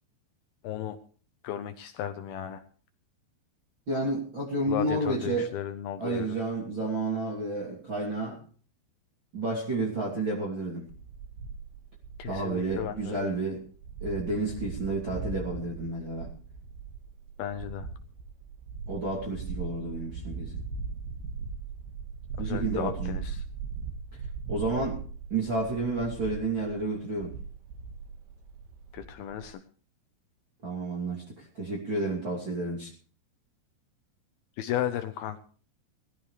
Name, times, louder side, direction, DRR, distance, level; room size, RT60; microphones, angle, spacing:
voice 1, 0.6-1.0 1.4-2.6 4.7-6.4 12.2-13.3 17.4-17.9 22.4-23.4 28.9-29.6 34.6-35.4, left 10 dB, 80° left, 8 dB, 2.2 m, -34 dB
voice 2, 3.9-5.5 6.0-8.4 9.3-10.9 12.3-13.6 14.0-16.3 18.9-20.6 22.4-23.2 24.5-25.0 25.3-27.3 30.6-32.9, right 2 dB, 30° right, -5 dB, 2.8 m, -31 dB
sound 1, 10.9-29.5, right 5 dB, 80° right, 3.8 m, -39 dB
20.5 x 14.0 x 3.3 m, 0.41 s
omnidirectional pair, 5.1 m